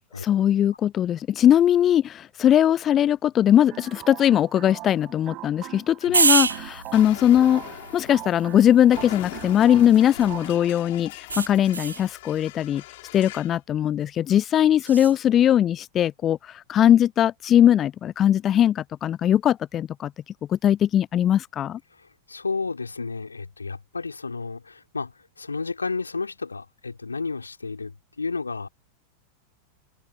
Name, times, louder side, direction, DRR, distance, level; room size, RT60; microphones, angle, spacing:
voice 1, 0.2-7.6 7.9-12.8 13.1-20.1 20.5-21.8, left 10 dB, 30° left, 0.4 m, -20 dB
sound 1, 3.7-10.7, right 18 dB, 40° right, 4.8 m, -41 dB
sound 2, 6.1-10.5 11.3-12.1 14.8-15.2, right 5 dB, 75° right, 0.8 m, -28 dB
Explosion, 6.9-13.6, left 19 dB, 50° left, 4.7 m, -41 dB
voice 2, 21.9-28.7, left 4 dB, 80° left, 2.9 m, -32 dB
open air
figure-of-eight pair, 90°, 0 cm